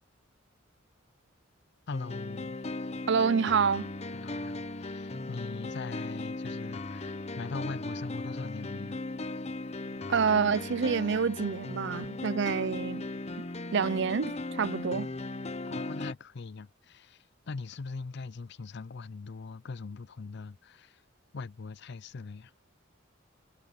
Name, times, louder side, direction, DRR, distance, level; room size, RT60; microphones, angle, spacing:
voice 1, 1.9-2.6 4.1-9.0 15.6-21.0 21.3-22.5, left 4 dB, 60° left, 0.5 m, -41 dB
sound 1, 1.9-16.1, left 2 dB, 35° left, 1.0 m, -37 dB
voice 2, 3.1-3.9 10.1-13.0 13.7-15.1, right 6 dB, 60° right, 0.5 m, -27 dB
head